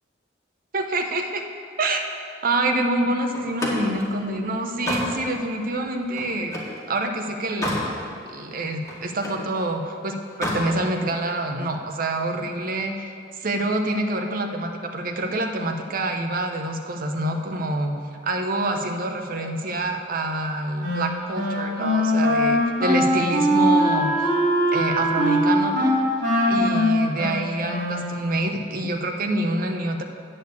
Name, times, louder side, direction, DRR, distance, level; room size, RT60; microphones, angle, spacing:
voice 1, 0.7-1.4 1.8-2.0 2.4-7.8 8.3-13.1 13.4-17.9 18.2-24.3 24.7-26.0 26.5-30.0, right 1 dB, 50° right, 4 dB, 0.8 m, -26 dB
Slam, 3.3-6.8 7.2-7.9 8.3-9.5 10.2-10.7, left 1 dB, 20° left, 2.0 m, -30 dB
Wind instrument woodwind instrument, 20.8-28.3, equal, 65° right, 3.2 m, -21 dB
8.8 x 6.7 x 8.2 m, 2.4 s
head